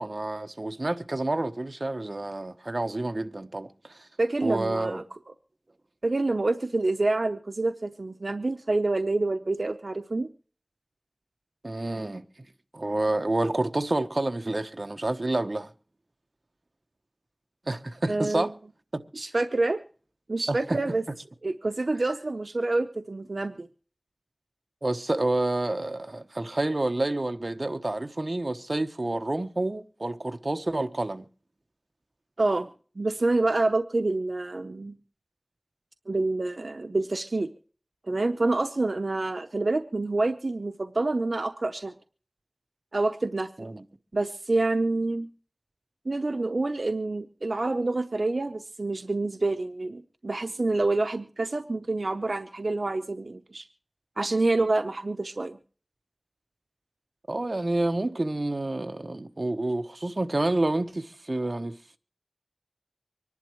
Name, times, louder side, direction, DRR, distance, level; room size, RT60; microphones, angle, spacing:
voice 1, 0.0-4.1 4.4-5.0 11.6-12.2 12.7-15.7 17.7-18.5 18.9-19.0 20.5-20.8 24.8-31.2 43.6-43.8 57.3-61.8, right 2 dB, 60° right, 1.1 m, -29 dB
voice 2, 4.2-5.0 6.0-10.3 18.1-18.5 19.1-19.8 20.3-21.0 21.4-23.7 32.4-32.7 33.0-35.0 36.1-37.5 38.1-41.9 42.9-43.5 44.1-45.3 46.1-53.7 54.2-55.6, right 2 dB, 90° right, 0.7 m, -27 dB
25.0 x 11.0 x 3.0 m
wide cardioid pair, 45°, 0 cm